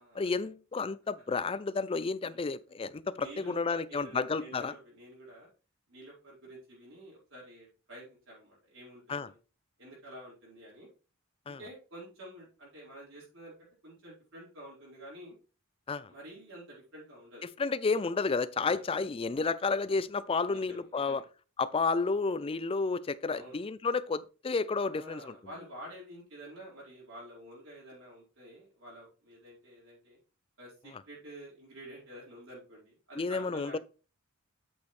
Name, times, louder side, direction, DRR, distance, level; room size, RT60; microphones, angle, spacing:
voice 1, 0.2-4.7 9.1-9.3 11.5-11.6 15.9-16.1 17.4-21.2 21.6-25.3 33.2-33.8, left 4 dB, 25° left, 0.4 m, -31 dB
voice 2, 3.2-5.5 5.9-9.4 9.8-10.9 11.5-15.3 16.1-17.5 18.2-18.8 20.5-21.2 23.3-23.7 24.9-30.2 30.6-33.8, right 1 dB, 60° right, 4.3 m, -49 dB
8.5 x 6.2 x 3.2 m
head